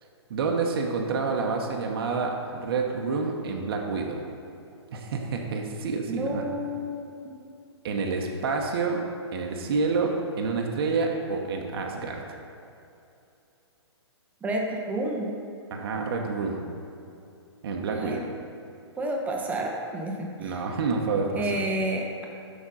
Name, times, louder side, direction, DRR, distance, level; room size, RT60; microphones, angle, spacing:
voice 1, 0.3-4.3 4.9-6.5 7.8-9.0 9.3-12.4 15.7-16.6 17.6-18.2 20.4-21.6, right 4 dB, 55° right, 1 dB, 0.9 m, -28 dB
voice 2, 6.1-7.4 14.4-15.3 17.9-18.2 19.0-20.7 21.3-22.2, right 1 dB, 10° right, 0 dB, 0.8 m, -30 dB
6.3 x 5.2 x 5.4 m, 2.7 s
hypercardioid pair, 135°, 15 cm